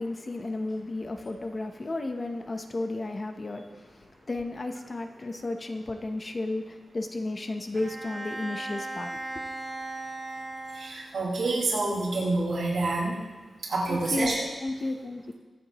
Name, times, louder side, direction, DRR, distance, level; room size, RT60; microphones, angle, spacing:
voice 1, 0.0-9.3 13.9-14.3 14.6-15.3, left 2 dB, 30° left, 5 dB, 0.8 m, -33 dB
Bowed string instrument, 7.7-11.4, right 2 dB, 40° right, 2.4 m, -37 dB
voice 2, 10.7-13.2 13.6-14.4, right 2 dB, 65° right, -5 dB, 4.7 m, -27 dB
23.5 x 8.5 x 3.0 m, 1.3 s
wide cardioid pair, 170°, 0 cm